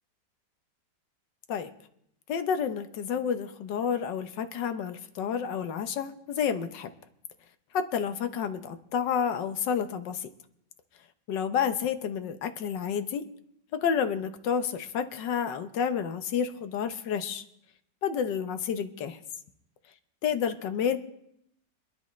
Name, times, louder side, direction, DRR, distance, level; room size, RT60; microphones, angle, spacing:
voice 1, 2.3-6.9 7.7-10.3 11.3-13.2 13.7-17.4 18.0-19.2 20.2-21.0, left 7 dB, 85° left, 9 dB, 1.6 m, -30 dB
26.5 x 10.0 x 3.1 m, 0.75 s
omnidirectional pair, 1.9 m